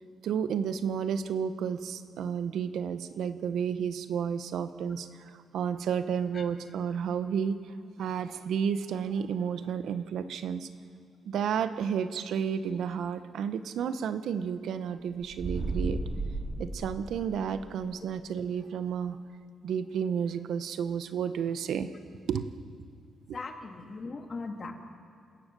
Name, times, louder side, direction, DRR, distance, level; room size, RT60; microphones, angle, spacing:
voice 1, 0.2-10.7 11.3-16.0 16.6-19.2 19.6-21.9 22.3-22.5 23.3-23.4, right 7 dB, 75° right, 11 dB, 1.0 m, -31 dB
sound 1, 15.2-17.7, right 2 dB, 40° right, 3.1 m, -34 dB
voice 2, 23.3-24.7, left 3 dB, 35° left, 4 dB, 2.3 m, -38 dB
28.0 x 17.0 x 6.9 m, 2.3 s
cardioid pair, 115°, 0 cm